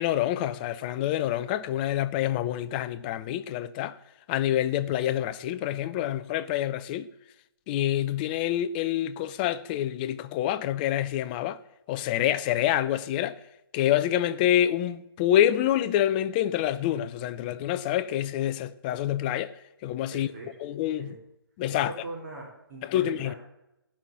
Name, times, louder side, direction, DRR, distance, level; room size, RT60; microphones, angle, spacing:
voice 1, 0.0-4.0 4.3-7.1 7.7-11.6 11.9-13.4 13.7-19.5 19.8-20.3 20.6-21.1 21.6-21.9 22.8-23.3, left 12 dB, 25° left, 0.6 m, -27 dB
voice 2, 20.1-20.6 21.0-21.1 21.7-23.4, right 2 dB, 45° right, 4.7 m, -41 dB
17.0 x 5.8 x 8.6 m
figure-of-eight pair, 145°, 13 cm